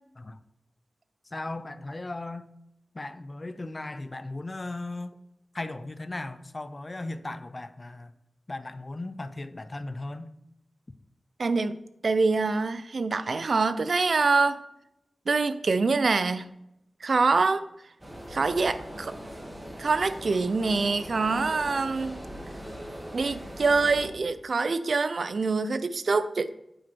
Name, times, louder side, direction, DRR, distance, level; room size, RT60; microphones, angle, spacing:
voice 1, 1.3-2.5 2.9-5.2 5.5-8.1 8.5-10.3, left 2 dB, 35° left, 0.5 m, -37 dB
voice 2, 11.4-11.8 12.0-14.6 15.3-16.5 17.0-17.6 18.3-19.1 19.8-22.2 23.1-26.6, right 4 dB, 70° right, 0.5 m, -25 dB
sound 1, 18.0-24.1, equal, 20° right, 2.2 m, -40 dB
8.8 x 5.0 x 4.6 m
wide cardioid pair, 80°, 0 cm